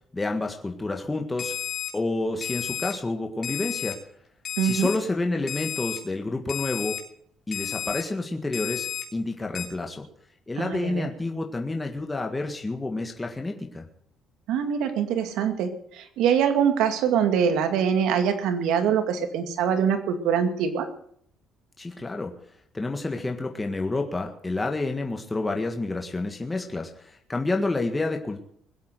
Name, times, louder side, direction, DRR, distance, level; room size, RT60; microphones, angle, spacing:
voice 1, 0.1-1.6 1.9-4.0 4.6-7.0 7.5-10.1 10.5-13.8 21.8-22.3 22.7-28.4, left 2 dB, 15° left, 3 dB, 1.7 m, -29 dB
Alarm, 1.4-1.9 2.4-2.9 3.4-3.9 4.4-5.0 5.5-6.0 6.5-7.0 7.5-8.0 8.5-9.0 9.5-9.7, left 9 dB, 50° left, 3.3 m, -32 dB
voice 2, 4.6-4.9 10.6-11.1 14.5-20.9, right 8 dB, 85° right, 7 dB, 2.3 m, -24 dB
21.0 x 8.3 x 6.7 m, 0.65 s
cardioid pair, 105°, 0 cm